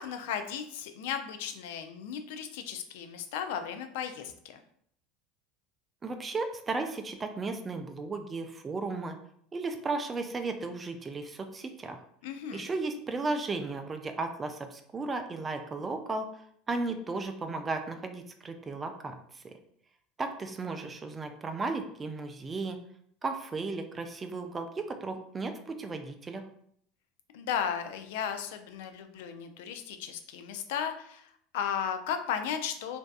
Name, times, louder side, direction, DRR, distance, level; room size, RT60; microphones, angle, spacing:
voice 1, 0.0-4.6 12.2-12.7 27.3-33.0, left 8 dB, 75° left, 7 dB, 0.3 m, -35 dB
voice 2, 6.0-9.2 9.5-12.0 12.5-16.3 16.7-19.5 20.2-22.8 23.2-26.4, right 3 dB, 25° right, 6 dB, 0.3 m, -35 dB
2.6 x 2.2 x 2.3 m, 0.66 s
hypercardioid pair, 90°, 0 cm